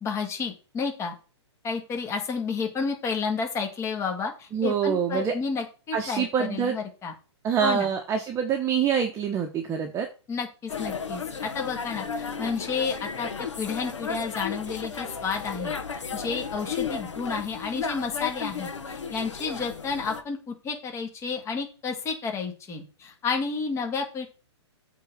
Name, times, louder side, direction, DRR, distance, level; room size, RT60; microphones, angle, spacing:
voice 1, 0.0-1.1 1.6-7.1 7.6-7.9 10.3-13.3 13.6-24.3, left 5 dB, 20° left, 3 dB, 2.0 m, -31 dB
voice 2, 4.5-5.3 5.9-6.8 7.4-10.1, right 7 dB, 20° right, 4 dB, 1.2 m, -25 dB
sound 1, 10.7-20.2, left 5 dB, 90° left, 1.7 m, -34 dB
8.2 x 3.9 x 6.8 m, 0.35 s
hypercardioid pair, 135°, 15 cm